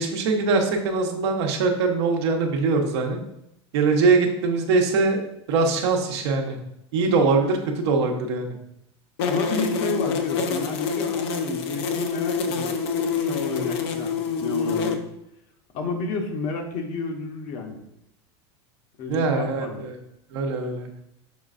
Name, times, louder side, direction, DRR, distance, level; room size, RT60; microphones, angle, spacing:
voice 1, 0.0-3.2 3.7-5.2 5.5-6.6 6.9-8.5 19.1-20.0 20.3-20.9, right 4 dB, 75° right, 3 dB, 0.8 m, -22 dB
sound 1, 9.2-14.9, left 5 dB, 70° left, 0.5 m, -26 dB
voice 2, 9.3-15.0 15.7-17.8 19.0-19.8, left 4 dB, 50° left, 3 dB, 0.9 m, -31 dB
5.8 x 3.2 x 2.5 m, 0.81 s
supercardioid pair, 115°, 15 cm